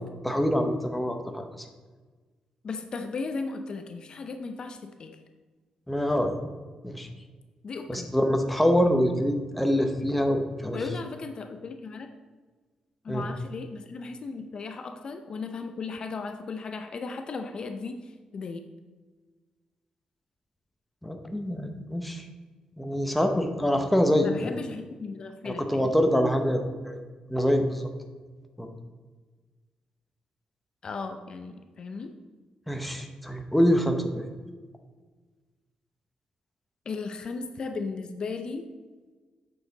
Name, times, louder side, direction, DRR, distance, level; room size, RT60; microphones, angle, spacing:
voice 1, 0.2-1.7 5.9-6.4 6.8-7.1 7.9-10.8 13.1-13.2 21.0-22.3 22.8-24.5 25.4-27.0 27.3-27.9 28.6-28.7 32.7-34.2, equal, 5° left, 4 dB, 0.7 m, -25 dB
voice 2, 2.6-5.2 7.6-8.1 10.7-12.1 13.0-18.6 24.2-26.0 30.8-32.1 36.9-38.6, left 4 dB, 40° left, 6 dB, 0.5 m, -36 dB
8.5 x 6.4 x 3.9 m, 1.4 s
wide cardioid pair, 150°, 2 cm